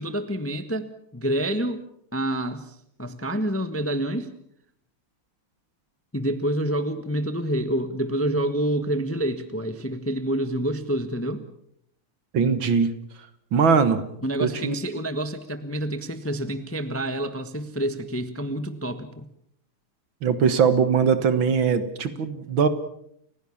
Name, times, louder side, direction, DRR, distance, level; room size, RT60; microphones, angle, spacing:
voice 1, 0.0-1.8 2.1-4.3 6.1-11.4 14.2-19.3, right 1 dB, 10° left, 9 dB, 1.0 m, -28 dB
voice 2, 12.3-12.9 13.5-14.0 14.4-14.7 20.2-22.7, right 6 dB, 60° right, 11 dB, 2.2 m, -21 dB
29.5 x 16.5 x 7.2 m, 0.72 s
omnidirectional pair, 2.4 m